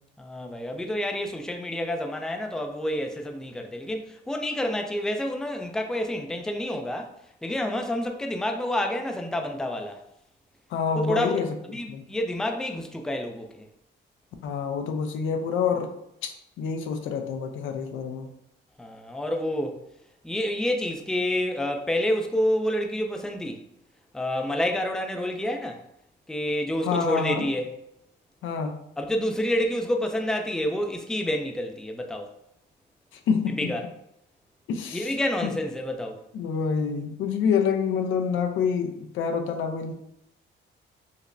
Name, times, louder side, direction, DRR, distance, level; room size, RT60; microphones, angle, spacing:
voice 1, 0.2-7.1 7.4-10.0 11.0-11.4 11.7-13.6 18.8-19.8 20.2-23.6 24.1-25.8 26.3-27.7 29.0-32.3 33.6-33.8 34.9-36.2, left 1 dB, 5° left, 0.4 m, -28 dB
voice 2, 10.7-11.5 11.9-12.1 14.4-15.9 16.2-18.3 26.8-27.5 28.4-28.8 33.3-33.7 34.7-35.1 35.4-35.5 36.3-39.9, left 6 dB, 80° left, 0.5 m, -27 dB
5.1 x 2.0 x 2.6 m
cardioid pair, 90°, 20 cm